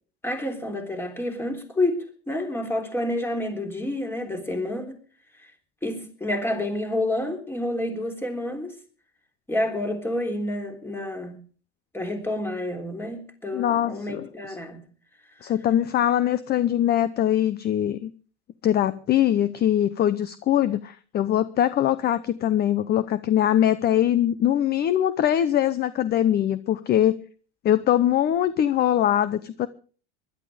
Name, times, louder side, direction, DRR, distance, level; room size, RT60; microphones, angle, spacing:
voice 1, 0.2-5.0 5.4-5.5 5.8-8.8 9.5-11.4 11.9-14.9 15.4-15.5, left 1 dB, 5° left, 5 dB, 3.6 m, -29 dB
voice 2, 13.5-14.2 15.4-18.1 18.6-27.2 27.6-29.7, left 11 dB, 30° left, 16 dB, 0.8 m, -22 dB
20.0 x 12.0 x 5.0 m, 0.42 s
supercardioid pair, 125°, 33 cm